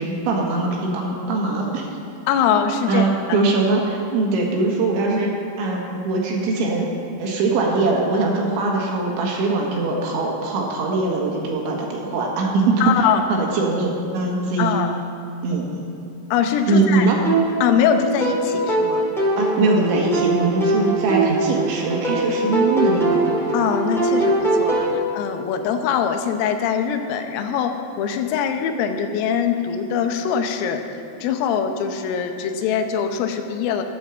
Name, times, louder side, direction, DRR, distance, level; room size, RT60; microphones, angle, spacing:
voice 1, 0.0-1.9 2.9-5.3 5.6-6.9 7.2-12.8 13.3-14.8 15.4-15.8 16.7-17.2 19.4-23.5 24.7-24.8, right 3 dB, 70° right, -1 dB, 3.7 m, -22 dB
voice 2, 2.3-3.4 12.8-13.2 14.6-15.0 16.3-17.1 17.6-19.1 23.5-27.7 28.0-30.8 31.2-33.8, left 7 dB, 90° left, 5 dB, 3.6 m, -22 dB
sound 1, 17.2-24.9, right 2 dB, ahead, 1.4 m, -22 dB
12.0 x 9.3 x 7.4 m, 2.7 s
omnidirectional pair, 5.9 m